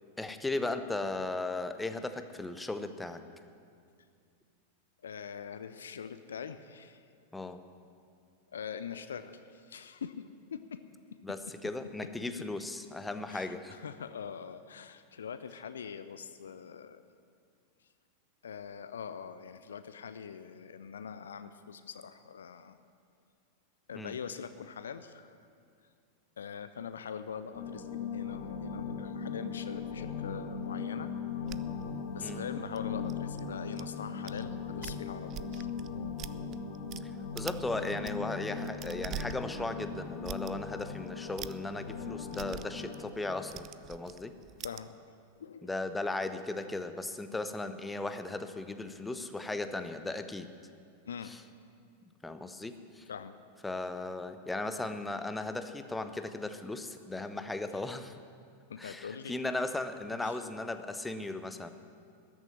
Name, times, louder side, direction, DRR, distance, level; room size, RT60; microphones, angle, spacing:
voice 1, 0.2-3.2 7.3-7.6 11.2-13.8 23.9-24.2 32.2-32.4 37.0-44.3 45.6-50.5 51.2-51.4 52.2-53.1 53.6-58.2 58.8-61.7, left 2 dB, 10° left, 9 dB, 0.8 m, -37 dB
voice 2, 5.0-7.0 8.5-10.8 12.0-12.1 13.3-17.0 18.4-22.8 23.9-25.3 26.4-31.1 32.1-35.7 44.6-44.9 45.4-45.7 51.1-51.3 53.1-53.4 58.7-59.3 60.2-60.4, left 7 dB, 65° left, 11 dB, 0.5 m, -43 dB
sound 1, 27.5-43.0, left 5 dB, 40° left, 2.0 m, -39 dB
sound 2, 31.5-33.8 34.3-34.4 34.7-37.0 37.4-37.7 37.9-44.8, right 13 dB, 35° right, 0.4 m, -45 dB
13.5 x 7.4 x 9.7 m, 2.3 s
figure-of-eight pair, 90°, 0 cm